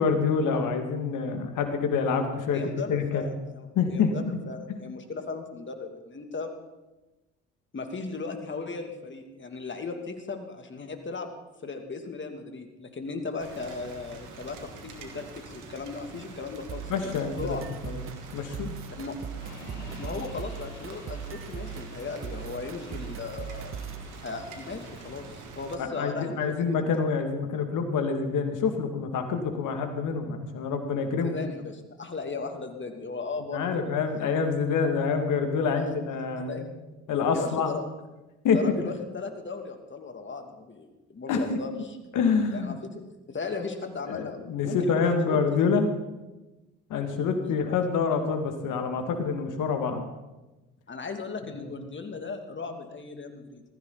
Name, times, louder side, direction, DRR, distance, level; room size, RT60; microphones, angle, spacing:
voice 1, 0.0-2.6 2.9-3.2 3.8-4.4 4.7-4.8 16.9-17.6 17.8-18.0 18.3-18.8 25.9-31.3 33.5-36.7 37.1-37.7 38.4-38.9 41.3-41.6 42.1-42.8 44.1-45.9 46.9-50.1 51.5-51.7, left 5 dB, 70° left, 5 dB, 2.4 m, -27 dB
voice 2, 2.5-6.5 7.7-11.3 11.6-17.6 19.0-19.2 20.0-23.7 24.2-26.7 31.1-34.0 35.7-36.0 36.5-36.6 37.3-37.8 38.5-42.0 42.5-43.0 43.3-45.6 47.2-47.8 50.9-53.6, left 4 dB, 35° left, 5 dB, 2.7 m, -37 dB
Rain, 13.4-25.7, right 4 dB, 65° right, 2.6 m, -45 dB
sound 1, 16.7-24.1, right 7 dB, 40° right, 0.9 m, -40 dB
sound 2, 19.4-25.1, left 2 dB, 90° left, 3.6 m, -49 dB
19.0 x 15.0 x 4.1 m, 1.1 s
hypercardioid pair, 55°, 33 cm